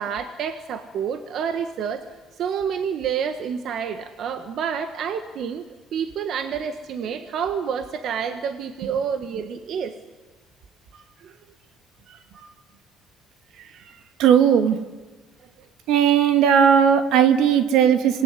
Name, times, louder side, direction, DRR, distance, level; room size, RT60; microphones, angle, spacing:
voice 1, 0.0-2.0 2.4-5.6 5.9-9.9 10.9-11.3 12.1-12.5 13.5-14.0, right 7 dB, 55° right, 8 dB, 1.5 m, -29 dB
voice 2, 14.2-14.8 15.9-18.2, right 8 dB, 75° right, 8 dB, 2.3 m, -17 dB
26.5 x 20.0 x 9.8 m, 1.3 s
cardioid pair, 125°, 0 cm